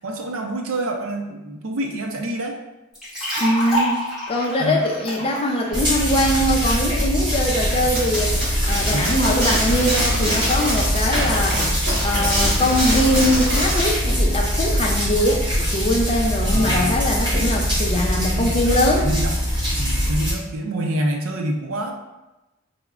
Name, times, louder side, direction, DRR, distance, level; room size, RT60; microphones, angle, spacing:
voice 1, 0.0-2.6 4.6-4.8 8.9-9.1 16.4-17.1 18.4-19.4 19.8-21.9, right 1 dB, 75° right, 2 dB, 0.5 m, -27 dB
sound 1, 2.9-6.8, equal, ahead, 1.0 m, -28 dB
voice 2, 3.4-4.0 4.3-8.3 8.7-11.6 12.0-19.1, left 1 dB, 25° left, 0 dB, 0.4 m, -22 dB
sound 2, 5.7-20.3, equal, 20° right, 0.7 m, -22 dB
sound 3, 8.0-13.9, equal, 50° right, 1.4 m, -25 dB
4.7 x 2.1 x 2.3 m, 1.0 s
head